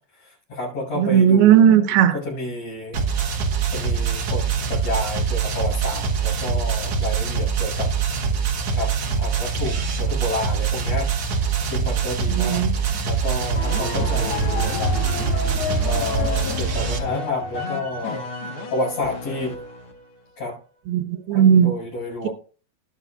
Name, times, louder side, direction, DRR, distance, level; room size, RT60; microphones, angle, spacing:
voice 1, 0.2-1.7 2.1-3.0 3.7-7.9 8.7-8.9 9.2-11.1 11.7-12.6 13.0-14.9 15.8-18.3 18.7-19.6 20.4-20.6 21.3-22.3, left 2 dB, 40° left, 7.3 m, -30 dB
voice 2, 0.9-2.2 12.3-13.0 20.9-21.8, right 9 dB, 75° right, 3.0 m, -16 dB
sound 1, 2.9-17.0, right 6 dB, 55° right, 1.8 m, -24 dB
sound 2, 13.5-20.0, left 3 dB, 75° left, 1.2 m, -30 dB
20.5 x 7.5 x 2.5 m
omnidirectional pair, 4.9 m